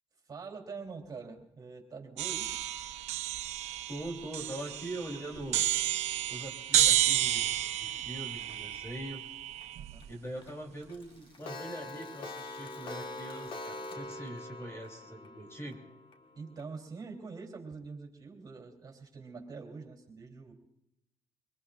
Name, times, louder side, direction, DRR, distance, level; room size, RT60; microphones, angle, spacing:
voice 1, 0.3-2.5 9.7-10.1 16.3-20.5, right 4 dB, 35° right, 1 dB, 3.6 m, -45 dB
sound 1, 2.2-10.1, right 13 dB, 80° right, 0.9 m, -31 dB
voice 2, 3.9-5.6 6.3-9.2 10.1-15.8, right 1 dB, 25° left, 1 dB, 3.6 m, -42 dB
Clock, 4.4-7.4 7.9-8.0 8.3-8.4 8.7-8.8 9.1-9.2 9.6-9.7 10.0-10.1 10.4-10.5 10.8-16.7, left 2 dB, 50° left, 1.4 m, -45 dB
25.0 x 20.0 x 2.5 m, 0.82 s
cardioid pair, 105°, 11 cm